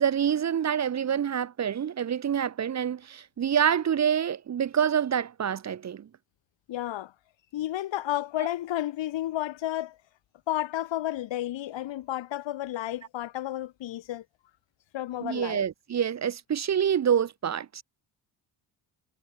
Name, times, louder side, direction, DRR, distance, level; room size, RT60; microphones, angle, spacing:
voice 1, 0.0-6.1 15.2-17.8, right 8 dB, 35° right, 0.7 m, -27 dB
voice 2, 6.7-7.1 7.5-10.0 10.5-14.2 14.9-15.6, left 13 dB, 75° left, 1.3 m, -32 dB
cardioid pair, 115°, 45 cm